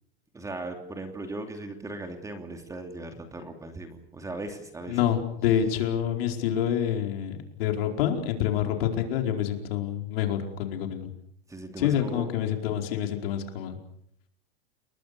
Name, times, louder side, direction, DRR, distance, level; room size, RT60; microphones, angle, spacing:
voice 1, 0.3-5.0 11.5-12.3, right 2 dB, 10° right, 5 dB, 2.8 m, -38 dB
voice 2, 4.9-11.1 11.8-13.8, left 10 dB, 60° left, 4 dB, 4.8 m, -27 dB
29.5 x 21.0 x 6.9 m, 0.71 s
supercardioid pair, 150°, 32 cm